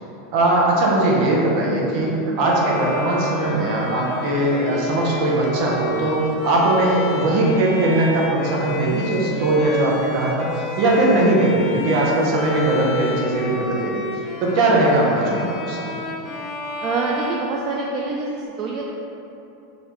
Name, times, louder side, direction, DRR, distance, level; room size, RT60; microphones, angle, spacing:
voice 1, 0.3-2.1 2.4-14.1 14.4-15.9, right 1 dB, 50° right, -3 dB, 0.9 m, -20 dB
Bowed string instrument, 2.4-18.2, left 1 dB, 40° left, 0.5 m, -31 dB
voice 2, 16.8-19.0, right 3 dB, 35° right, -2 dB, 0.3 m, -26 dB
4.1 x 2.6 x 4.5 m, 2.9 s
supercardioid pair, 150°, 0 cm